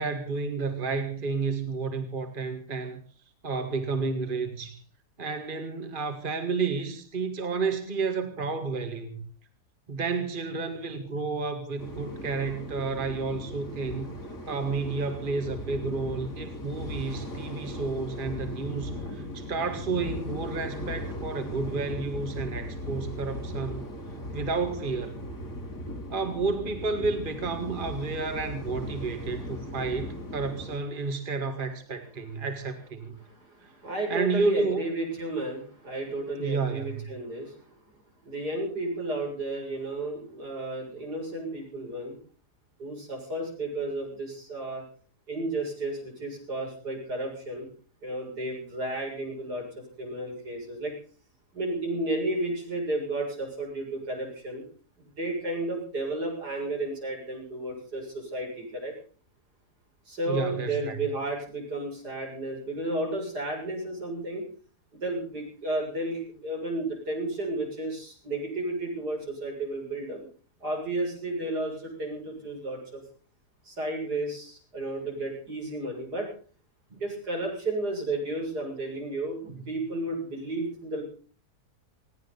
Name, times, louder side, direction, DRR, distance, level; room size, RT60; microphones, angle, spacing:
voice 1, 0.0-3.0 3.4-4.8 5.2-9.2 9.9-14.1 14.5-23.9 24.3-25.2 26.1-33.2 34.1-34.8 36.4-37.1 60.3-61.0 76.9-77.0 79.5-79.6, right 4 dB, 30° right, 7 dB, 2.0 m, -31 dB
Viento y Olas (voces lejanas), 11.8-30.8, left 1 dB, 90° left, 3.5 m, -38 dB
voice 2, 33.8-37.6 38.3-42.2 42.8-44.8 45.3-47.7 48.0-50.9 51.5-54.6 55.0-58.9 60.1-64.4 65.0-70.2 70.6-73.0 73.7-76.3 77.0-81.0, right 2 dB, 85° right, 0 dB, 7.7 m, -32 dB
20.0 x 17.0 x 4.1 m, 0.41 s
omnidirectional pair, 1.7 m